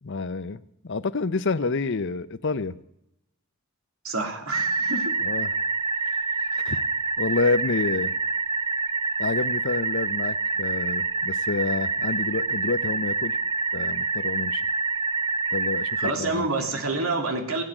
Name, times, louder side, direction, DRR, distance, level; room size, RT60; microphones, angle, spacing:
voice 1, 0.0-2.8 5.2-5.5 6.6-6.9 7.2-8.1 9.2-13.4 13.7-14.6 15.5-16.5, left 3 dB, 60° left, 15 dB, 0.7 m, -28 dB
voice 2, 4.0-5.1 16.0-17.6, right 2 dB, 90° right, 3 dB, 3.1 m, -28 dB
sound 1, 4.5-16.1, right 4 dB, 25° right, 0.4 m, -27 dB
16.5 x 7.5 x 9.9 m, 0.82 s
head